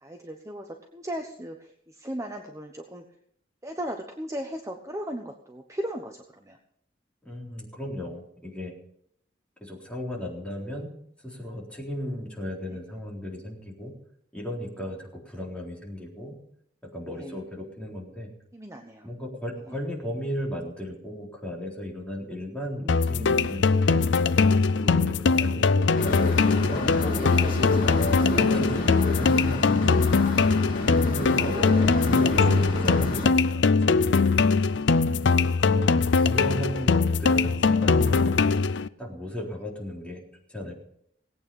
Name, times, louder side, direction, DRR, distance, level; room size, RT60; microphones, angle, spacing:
voice 1, 0.0-3.0 3.6-6.6 12.7-12.8 17.1-17.4 18.5-19.1 19.7-19.8 22.8-23.7 24.9-25.1 31.4-31.9 32.3-32.8, right 1 dB, 15° right, 3 dB, 1.0 m, -37 dB
voice 2, 7.2-8.7 9.6-10.9 11.2-13.9 14.3-16.3 16.8-18.3 19.0-24.0 24.7-27.2 27.9-30.0 30.8-34.0 34.2-34.5 35.0-38.5 39.0-40.7, left 1 dB, 5° left, -3 dB, 3.9 m, -35 dB
sound 1, 22.9-38.9, left 4 dB, 85° left, 0.5 m, -22 dB
sound 2, 25.9-33.3, left 1 dB, 50° left, 2.9 m, -30 dB
18.5 x 8.8 x 5.6 m, 0.70 s
head